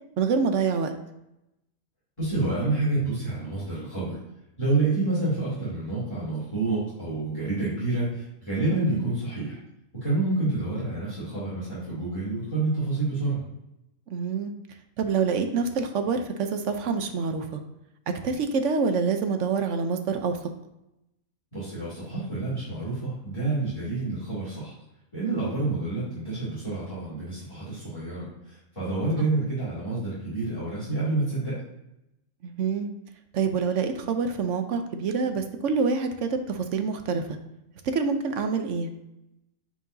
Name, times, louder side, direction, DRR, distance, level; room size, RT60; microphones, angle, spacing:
voice 1, 0.2-0.9 8.7-9.1 14.1-14.5 15.0-17.6 18.2-20.4 32.4-32.9 33.3-37.4 37.9-38.9, right 5 dB, 65° right, 7 dB, 1.0 m, -26 dB
voice 2, 2.2-4.1 4.6-9.6 9.9-13.4 21.5-24.7 25.1-31.6, right 2 dB, 20° left, -9 dB, 2.7 m, -28 dB
9.5 x 4.7 x 2.7 m, 0.88 s
omnidirectional pair, 1.5 m